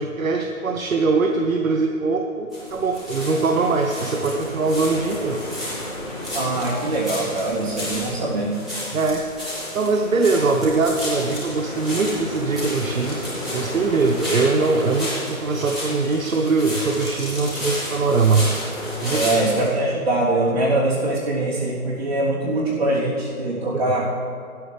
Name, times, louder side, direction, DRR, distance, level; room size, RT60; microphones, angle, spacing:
voice 1, 0.0-5.4 8.9-9.2 9.7-13.2 13.5-18.5 19.0-19.2 23.7-23.9, right 3 dB, 65° right, 3 dB, 1.0 m, -22 dB
sound 1, 2.5-19.7, left 1 dB, ahead, 1.4 m, -31 dB
voice 2, 6.3-8.6 19.1-24.1, right 2 dB, 45° right, -6 dB, 3.5 m, -23 dB
14.0 x 13.0 x 3.4 m, 2.4 s
hypercardioid pair, 175°, 43 cm